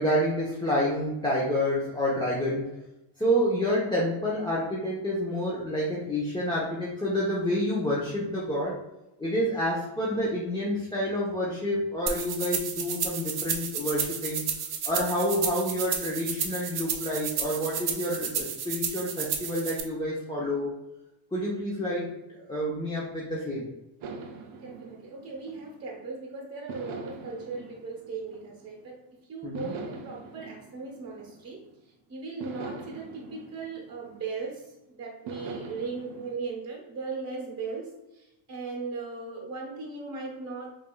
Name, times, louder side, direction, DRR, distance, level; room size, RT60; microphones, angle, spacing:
voice 1, 0.0-2.7 3.2-8.8 9.2-14.4 14.8-20.7 21.3-23.7 29.4-29.8, equal, 10° left, -6 dB, 1.0 m, -28 dB
sound 1, 12.1-19.8, right 7 dB, 50° right, 0.7 m, -32 dB
sound 2, 24.0-26.1 26.7-28.9 29.5-31.8 32.4-34.7 35.3-36.3, right 4 dB, 80° right, 0.7 m, -43 dB
voice 2, 24.6-31.6 32.1-40.8, right 4 dB, 30° right, -3 dB, 1.1 m, -38 dB
5.1 x 2.8 x 2.4 m, 0.96 s
cardioid pair, 85°, 49 cm